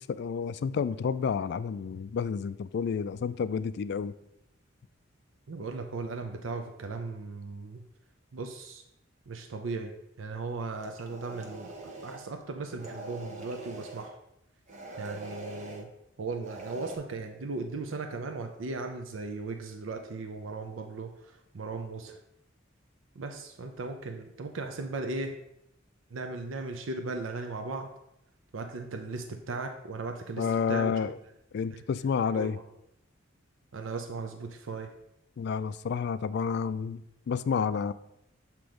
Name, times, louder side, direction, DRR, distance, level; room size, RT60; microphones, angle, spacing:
voice 1, 0.0-4.1 30.4-31.2 31.5-32.6 35.4-37.9, left 6 dB, 55° left, 15 dB, 0.3 m, -30 dB
voice 2, 5.5-7.8 8.3-8.8 9.3-11.7 12.0-14.2 15.0-15.9 16.2-22.2 23.1-25.3 26.1-27.9 28.5-30.9 31.7-31.8 32.3-32.6 33.7-34.9, right 3 dB, 80° right, 5 dB, 0.6 m, -37 dB
sound 1, 10.8-12.3 12.8-14.1 14.7-15.9 16.4-17.0, right 2 dB, 35° right, 0.9 m, -43 dB
7.7 x 3.0 x 4.9 m, 0.81 s
head